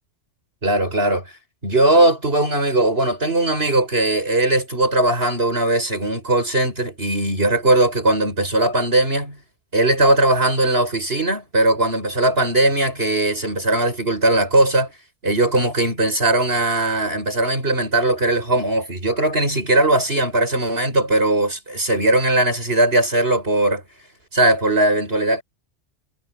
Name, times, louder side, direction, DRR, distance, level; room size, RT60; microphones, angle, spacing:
voice 1, 0.6-1.3 1.6-9.4 9.7-14.9 15.2-23.8 24.3-25.4, right 1 dB, 55° right, 6.5 m, -19 dB
omnidirectional pair, 1.2 m